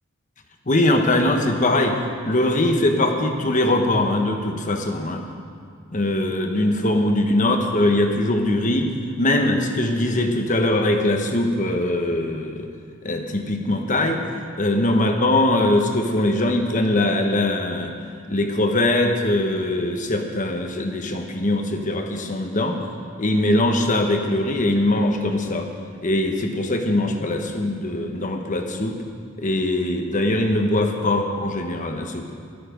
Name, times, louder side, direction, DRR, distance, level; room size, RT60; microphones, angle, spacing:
voice 1, 0.7-2.0 2.2-5.2 5.9-8.9 9.2-12.7 13.0-14.2 14.6-17.9 18.3-22.8 23.2-25.7 26.0-28.9 29.4-32.2, left 1 dB, 35° left, 4 dB, 1.1 m, -21 dB
13.0 x 11.5 x 5.1 m, 2.3 s
head